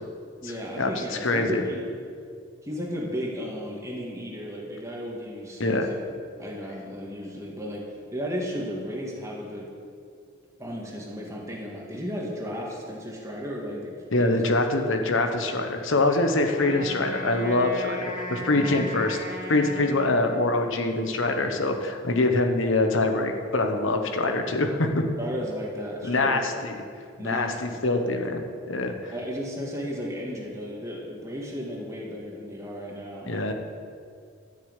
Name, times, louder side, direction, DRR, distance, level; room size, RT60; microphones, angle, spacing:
voice 1, 0.4-1.9 2.6-5.8 6.4-9.7 10.6-14.0 14.3-14.5 18.5-18.9 25.2-26.6 27.2-28.2 29.1-33.4, equal, 15° right, -2 dB, 1.9 m, -34 dB
voice 2, 1.2-1.6 5.6-5.9 14.1-19.2 19.5-25.0 26.0-26.8 27.2-28.4 28.7-29.1 33.3-33.5, left 2 dB, 80° left, 5 dB, 1.3 m, -24 dB
Wind instrument woodwind instrument, 16.5-20.9, equal, 40° left, 1.8 m, -37 dB
12.5 x 6.7 x 9.1 m, 2.3 s
head